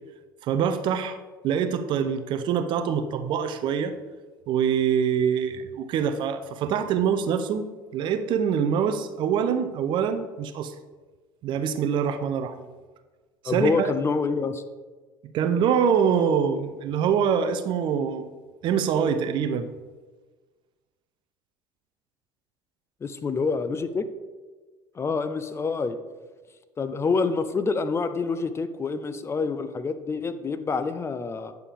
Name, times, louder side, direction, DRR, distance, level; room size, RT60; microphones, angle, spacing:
voice 1, 0.4-1.2 1.4-3.9 4.5-7.7 7.9-10.7 11.4-12.7 13.4-13.9 15.3-18.3 18.6-19.7, right 7 dB, 45° right, 9 dB, 0.6 m, -24 dB
voice 2, 13.5-14.6 23.0-24.1 25.0-26.0 26.8-31.5, left 4 dB, 25° left, 11 dB, 0.6 m, -27 dB
9.1 x 6.8 x 3.6 m, 1.3 s
figure-of-eight pair, 65°, 11 cm